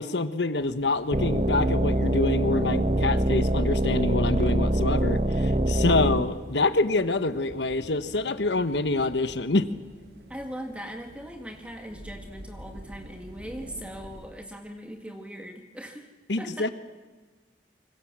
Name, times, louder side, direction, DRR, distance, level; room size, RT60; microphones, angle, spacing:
voice 1, 0.0-9.7 16.3-16.7, left 2 dB, 85° left, 11 dB, 1.2 m, -26 dB
sound 1, 0.6-14.3, equal, 65° right, 3.5 m, -48 dB
sound 2, 1.1-6.2, right 1 dB, 40° right, 1.0 m, -24 dB
voice 2, 10.3-16.1 16.4-16.7, equal, 5° right, 4 dB, 1.9 m, -40 dB
26.0 x 25.0 x 7.5 m, 1.3 s
head